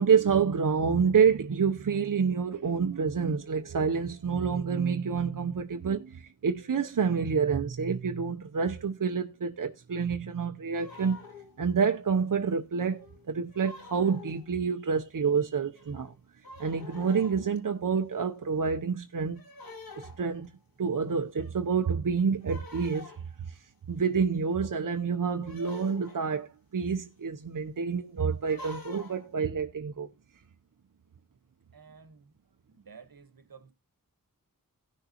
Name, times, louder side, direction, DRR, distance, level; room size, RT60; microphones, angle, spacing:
voice 1, 0.0-11.2 11.6-16.1 16.6-19.4 19.9-20.5 20.8-23.1 23.5-23.6 23.9-30.1, right 6 dB, 65° right, 0.7 m, -28 dB
sound 1, 10.7-11.6 12.2-12.3 12.8-14.5 15.4-15.5 15.7-16.1 16.4-17.6 18.5-18.9 19.3-20.5 21.4-21.5 22.4-23.5 25.4-26.3 28.3-29.3, left 2 dB, 85° left, 2.3 m, -47 dB
voice 2, 31.7-32.3 32.7-33.7, right 6 dB, 85° right, 1.3 m, -52 dB
17.0 x 6.5 x 2.9 m
wide cardioid pair, 65°, 34 cm